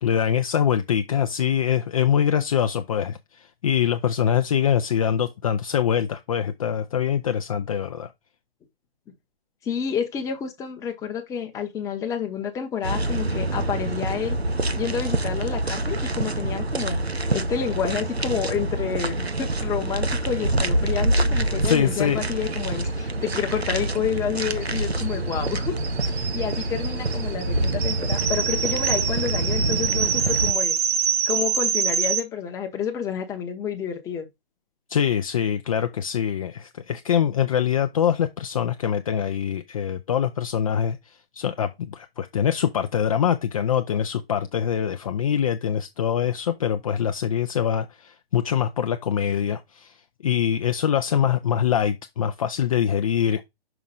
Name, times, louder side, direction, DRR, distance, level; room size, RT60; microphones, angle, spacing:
voice 1, 0.0-8.1 21.6-22.2 34.9-50.0 50.2-53.5, left 8 dB, 35° left, 0.6 m, -24 dB
voice 2, 9.6-14.4 14.7-25.8 26.1-30.8 31.3-34.3, left 8 dB, 10° left, 1.0 m, -29 dB
sound 1, 12.8-30.5, right 2 dB, 90° right, 0.9 m, -26 dB
Kettle Whistle, 22.5-22.6 22.8-22.9 23.2-32.2, right 7 dB, 15° right, 0.5 m, -26 dB
5.9 x 4.7 x 5.4 m
figure-of-eight pair, 130°, 31 cm